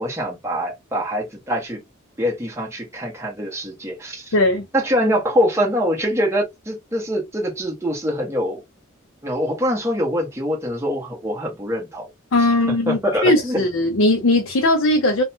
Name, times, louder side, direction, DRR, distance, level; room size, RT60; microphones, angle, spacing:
voice 1, 0.0-1.8 2.2-4.3 4.7-8.6 9.2-12.1 12.9-13.6, equal, 10° right, 0.9 m, -24 dB
voice 2, 4.3-4.6 12.3-15.2, left 1 dB, 65° left, 0.5 m, -18 dB
2.6 x 2.2 x 2.7 m
head